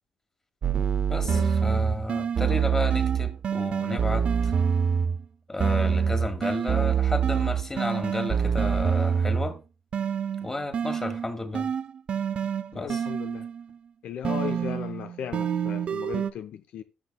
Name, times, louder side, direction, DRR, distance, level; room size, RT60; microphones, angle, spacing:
sound 1, 0.6-5.2 5.6-9.6 9.9-13.6 14.2-16.3, right 7 dB, 50° right, 0.5 m, -26 dB
voice 1, 1.1-4.5 5.5-9.6 10.4-11.7 12.7-13.0, left 2 dB, 20° left, 1.8 m, -32 dB
voice 2, 12.7-13.5 14.0-16.8, left 9 dB, 75° left, 0.6 m, -36 dB
14.0 x 6.2 x 2.2 m
cardioid pair, 80°, 2 cm